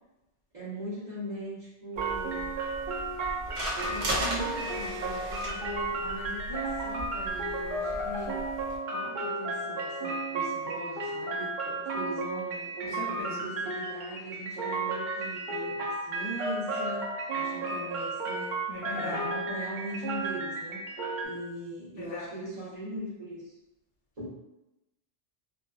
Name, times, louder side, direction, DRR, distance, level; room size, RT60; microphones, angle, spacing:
voice 1, 0.5-2.6 3.8-8.4 8.9-18.6 18.9-23.5 24.2-24.3, right 1 dB, 40° right, -12 dB, 1.0 m, -40 dB
sound 1, 2.0-21.2, right 2 dB, 60° right, 0.5 m, -33 dB
sound 2, 2.0-8.8, equal, 80° right, 1.0 m, -37 dB
voice 2, 13.0-13.5 18.7-19.3 22.0-22.3, left 2 dB, 60° left, -6 dB, 0.7 m, -38 dB
2.7 x 2.2 x 2.3 m, 0.94 s
omnidirectional pair, 1.1 m